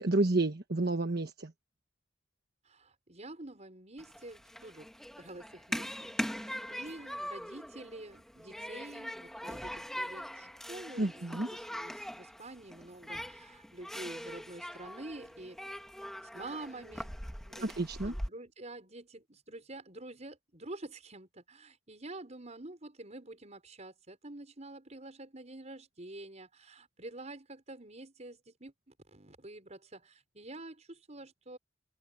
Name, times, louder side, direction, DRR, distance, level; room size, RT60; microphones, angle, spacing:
voice 1, 0.0-1.5 11.0-11.5 17.6-18.1, right 2 dB, 60° right, 1.3 m, -30 dB
voice 2, 2.6-15.8 16.3-17.1 17.4-31.6, right 2 dB, 40° right, 5.8 m, -48 dB
Human group actions, 4.0-18.3, equal, ahead, 1.6 m, -42 dB
open air
head